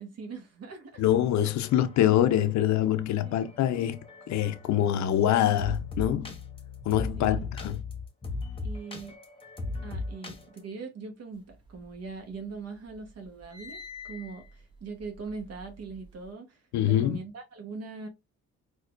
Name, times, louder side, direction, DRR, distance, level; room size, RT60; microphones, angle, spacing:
voice 1, 0.0-1.0 3.2-3.4 7.2-7.5 8.6-9.2 9.8-18.1, right 4 dB, 55° right, 0.9 m, -41 dB
voice 2, 1.0-4.0 4.3-6.3 6.9-7.8 16.7-17.2, left 11 dB, 65° left, 0.5 m, -25 dB
sound 1, 1.7-10.6, left 3 dB, 20° left, 0.9 m, -38 dB
sound 2, 11.5-12.5 12.9-16.3, left 4 dB, 15° right, 0.9 m, -48 dB
4.3 x 2.3 x 2.4 m
cardioid pair, 90°, 30 cm